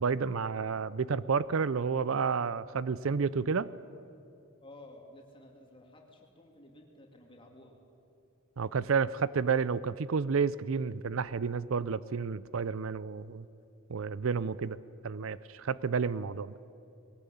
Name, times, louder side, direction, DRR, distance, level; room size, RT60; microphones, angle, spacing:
voice 1, 0.0-3.7 8.6-13.5 13.9-14.8 15.0-16.5, right 5 dB, 70° right, 18 dB, 0.5 m, -30 dB
voice 2, 4.6-7.8, left 1 dB, 25° left, 1 dB, 2.9 m, -53 dB
21.0 x 18.5 x 8.5 m, 2.7 s
head